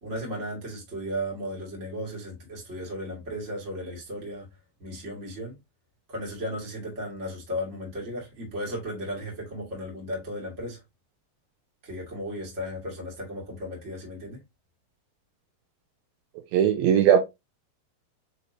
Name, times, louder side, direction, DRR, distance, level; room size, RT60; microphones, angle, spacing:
voice 1, 0.0-4.5 4.8-5.6 6.1-10.8 11.8-14.4, equal, 30° right, 1.5 m, -35 dB
voice 2, 16.5-17.2, right 9 dB, 80° right, 2.2 m, -19 dB
6.4 x 2.8 x 2.7 m
omnidirectional pair, 4.4 m